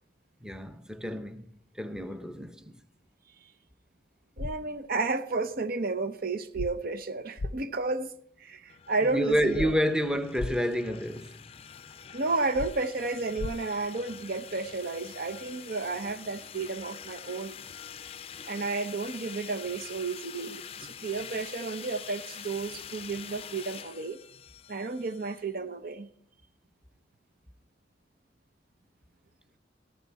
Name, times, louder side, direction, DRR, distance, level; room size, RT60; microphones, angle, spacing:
voice 1, 0.4-2.8 9.0-11.5, equal, 5° right, 0.7 m, -29 dB
sound 1, 4.4-4.5 6.6-6.7 7.4-7.5 9.6-9.7 10.4-10.5 12.6-12.7 13.4-13.5, left 2 dB, 80° left, 0.6 m, -33 dB
voice 2, 4.4-8.1 8.4-9.7 12.1-17.6 18.5-24.2 24.7-26.1, right 3 dB, 55° right, 0.7 m, -32 dB
sound 2, 8.7-25.5, left 8 dB, 35° left, 0.5 m, -45 dB
14.5 x 14.5 x 4.2 m
head